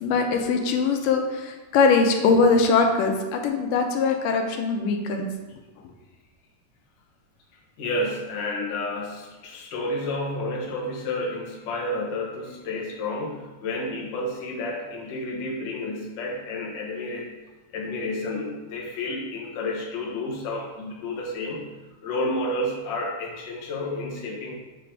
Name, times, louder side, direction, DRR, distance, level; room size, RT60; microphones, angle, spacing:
voice 1, 0.0-5.3, left 4 dB, 85° left, 3 dB, 2.3 m, -21 dB
voice 2, 7.8-17.3 17.7-21.7 22.0-24.5, left 1 dB, 60° left, -2 dB, 1.2 m, -30 dB
7.7 x 3.7 x 4.6 m, 1.2 s
omnidirectional pair, 3.8 m